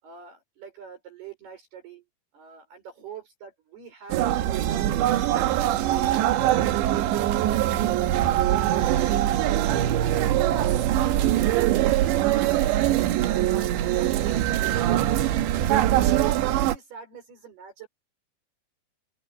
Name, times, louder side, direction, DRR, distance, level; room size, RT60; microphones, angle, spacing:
voice 1, 0.0-2.1 2.3-5.0 5.5-7.6 8.2-10.8 11.5-12.8 13.1-14.8 15.4-17.9, right 6 dB, 60° right, 7.5 m, -44 dB
sound 1, 4.1-16.8, right 13 dB, 85° right, 3.6 m, -22 dB
open air
omnidirectional pair, 5.0 m